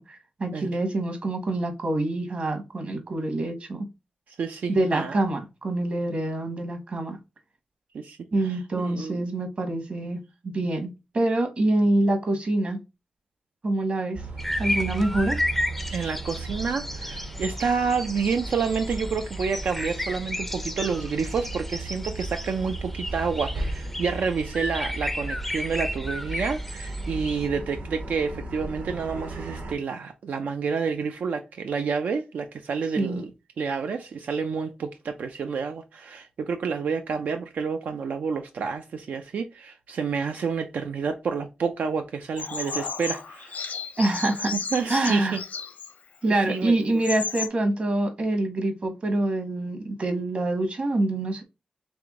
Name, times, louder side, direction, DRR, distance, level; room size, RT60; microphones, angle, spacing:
voice 1, 0.0-3.9 4.7-7.2 8.3-12.8 13.6-14.2 14.6-15.4 33.0-33.2 44.0-44.5 44.9-45.4 46.2-51.4, right 2 dB, 50° right, 1.2 m, -26 dB
voice 2, 4.3-5.2 7.9-9.2 15.9-33.3 33.6-43.6 44.5-45.4 46.3-46.8, right 5 dB, 85° right, 0.4 m, -29 dB
sound 1, 14.1-29.7, right 2 dB, 65° right, 1.1 m, -36 dB
sound 2, 14.4-27.5, left 1 dB, 5° left, 0.4 m, -33 dB
Bird vocalization bird call bird song, 42.4-45.9 46.6-46.7 46.9-47.5, left 5 dB, 75° left, 0.7 m, -33 dB
3.5 x 3.3 x 3.6 m
wide cardioid pair, 135°, 3 cm